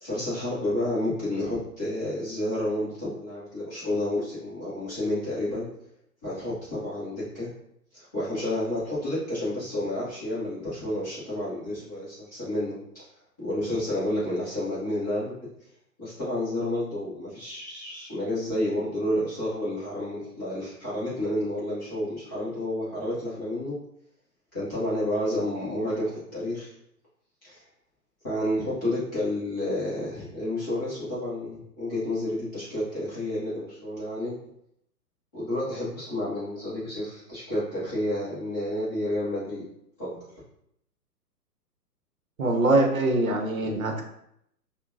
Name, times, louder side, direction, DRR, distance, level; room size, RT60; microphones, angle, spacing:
voice 1, 0.0-5.7 6.2-7.5 7.9-13.1 13.4-15.3 16.0-23.8 24.5-26.7 27.4-27.6 28.2-34.4 35.3-39.6 40.0-40.2, left 1 dB, 10° left, -11 dB, 0.6 m, -30 dB
voice 2, 42.4-44.1, right 2 dB, 55° right, 2 dB, 0.8 m, -23 dB
5.8 x 2.2 x 2.5 m, 0.75 s
figure-of-eight pair, 125°, 49 cm